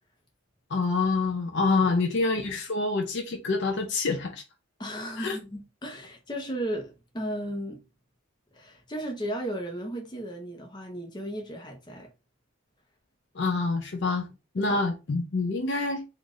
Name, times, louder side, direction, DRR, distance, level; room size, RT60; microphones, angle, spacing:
voice 1, 0.7-4.4 5.2-5.4 13.3-14.3 14.5-16.1, left 3 dB, 50° left, 0.5 m, -26 dB
voice 2, 4.8-7.8 8.5-12.1 14.6-14.8, right 1 dB, 20° left, 0.8 m, -35 dB
3.8 x 2.5 x 3.1 m
head